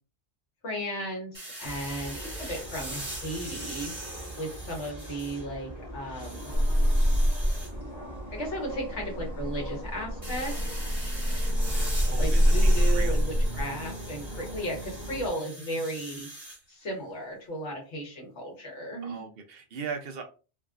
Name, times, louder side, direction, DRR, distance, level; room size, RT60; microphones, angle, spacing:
voice 1, 0.6-6.5 8.3-10.8 12.2-16.3 16.7-19.3, right 1 dB, 85° left, -1 dB, 1.5 m, -35 dB
sound 1, 1.3-5.6 6.0-7.7 10.2-16.6, right 1 dB, 30° right, 1.4 m, -42 dB
sound 2, 1.6-15.3, right 1 dB, 35° left, 1.1 m, -41 dB
sound 3, 6.5-7.9 8.2-13.6 15.4-15.8, equal, ahead, 0.7 m, -25 dB
voice 2, 11.7-13.2 19.0-20.2, right 6 dB, 65° right, 4 dB, 0.8 m, -39 dB
3.5 x 2.4 x 2.4 m, 0.34 s
omnidirectional pair, 1.2 m